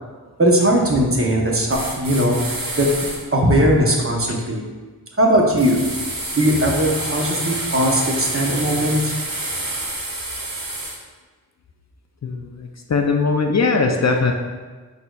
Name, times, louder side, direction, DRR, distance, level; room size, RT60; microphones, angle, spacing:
voice 1, 0.4-2.4 2.7-2.9 3.3-4.6 5.2-5.9 6.3-9.1, equal, 35° right, -1 dB, 0.8 m, -18 dB
sound 1, 1.7-3.2 5.6-11.0, right 2 dB, 60° right, 1.0 m, -28 dB
voice 2, 12.2-14.3, left 4 dB, 45° left, 3 dB, 0.4 m, -20 dB
4.9 x 4.1 x 2.3 m, 1.4 s
wide cardioid pair, 60°, 38 cm